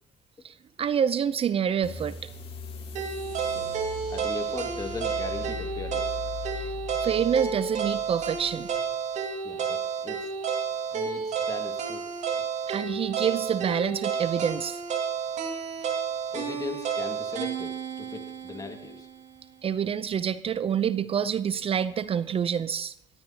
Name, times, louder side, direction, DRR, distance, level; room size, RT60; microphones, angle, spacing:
voice 1, 0.4-2.2 6.6-6.7 7.0-8.7 12.7-14.8 19.6-22.9, right 8 dB, 45° right, 0.6 m, -27 dB
sound 1, 1.8-8.9, left 5 dB, 50° left, 3.7 m, -40 dB
sound 2, 2.9-19.0, right 6 dB, 65° right, 2.1 m, -31 dB
voice 2, 4.1-6.2 9.4-10.3 10.9-12.0 16.3-19.1, left 4 dB, 30° left, 2.1 m, -38 dB
23.5 x 12.0 x 2.8 m
hypercardioid pair, 55°, 13 cm